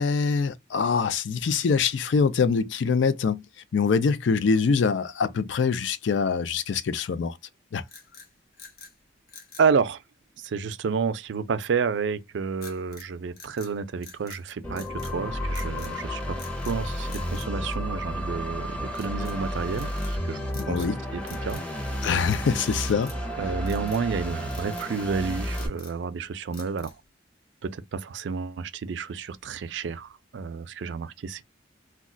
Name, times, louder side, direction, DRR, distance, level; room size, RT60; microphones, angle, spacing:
voice 1, 0.0-3.4 3.7-7.4 7.7-7.8 20.5-21.0 22.0-23.4, left 5 dB, 70° left, 0.4 m, -24 dB
sound 1, 7.8-8.9 9.3-9.7 12.6-13.1 13.4-14.4 14.7-15.2 15.5-15.9 16.3-16.8 17.1-18.3 18.9-19.4 19.7-20.1 20.5-21.0 21.2-21.7 22.0-22.4 22.7-23.3 23.7-24.1 24.5-24.9 25.3-26.0 26.5-27.1, left 4 dB, 55° left, 0.8 m, -48 dB
voice 2, 9.6-10.0 10.4-21.6 23.4-27.0 27.6-31.4, right 5 dB, 70° right, 0.4 m, -30 dB
sound 2, 14.6-25.7, equal, 5° left, 0.6 m, -32 dB
2.3 x 2.2 x 3.7 m
head